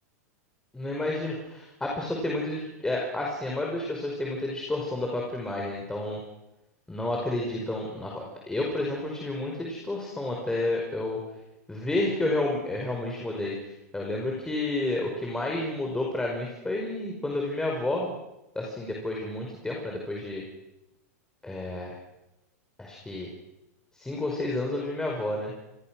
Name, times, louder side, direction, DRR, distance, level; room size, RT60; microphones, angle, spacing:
voice 1, 0.7-6.2 6.9-11.2 11.7-18.2 18.6-20.4 21.4-21.9 22.8-23.3 23.9-25.5, left 2 dB, 10° left, -1 dB, 5.3 m, -30 dB
28.0 x 21.0 x 6.3 m, 0.96 s
hypercardioid pair, 120°, 9 cm